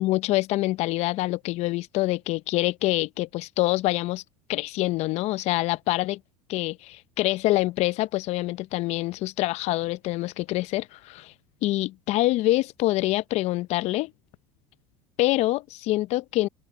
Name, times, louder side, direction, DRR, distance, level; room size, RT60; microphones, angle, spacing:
voice 1, 0.0-4.2 4.5-6.2 6.5-11.3 11.6-14.1 15.2-16.5, left 18 dB, 55° left, 0.7 m, -25 dB
supercardioid pair, 95°, 13 cm